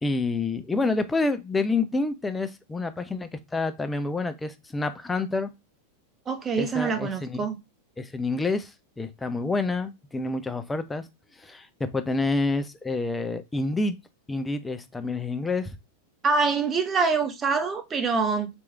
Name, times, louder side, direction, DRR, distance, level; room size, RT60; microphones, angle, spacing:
voice 1, 0.0-5.5 6.6-7.4 8.0-11.1 11.4-14.0 14.3-15.7, left 3 dB, 10° left, 0.5 m, -28 dB
voice 2, 6.3-7.6 16.2-18.5, right 4 dB, 20° right, 0.8 m, -25 dB
3.2 x 3.0 x 3.4 m
figure-of-eight pair, 90°, 0 cm